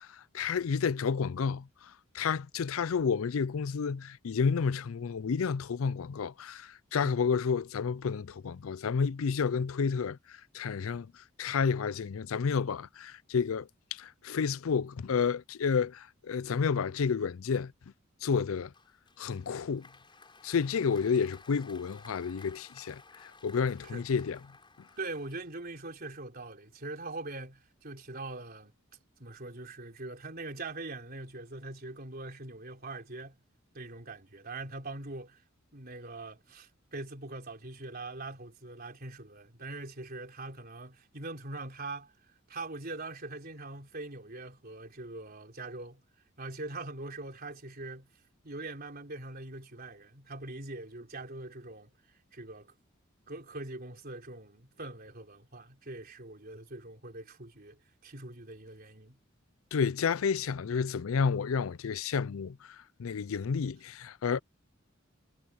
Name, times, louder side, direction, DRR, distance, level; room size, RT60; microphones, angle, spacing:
voice 1, 0.0-17.7 18.2-18.7 19.2-19.9 20.4-24.4 59.7-64.4, left 6 dB, 80° left, 0.5 m, -31 dB
Applause, 18.7-25.8, left 4 dB, 25° left, 5.6 m, -56 dB
voice 2, 25.0-28.7 29.2-33.4 33.7-35.4 35.7-42.1 42.5-46.0 46.4-48.1 48.4-51.9 52.3-52.7 53.3-59.2, right 2 dB, 45° right, 3.9 m, -42 dB
head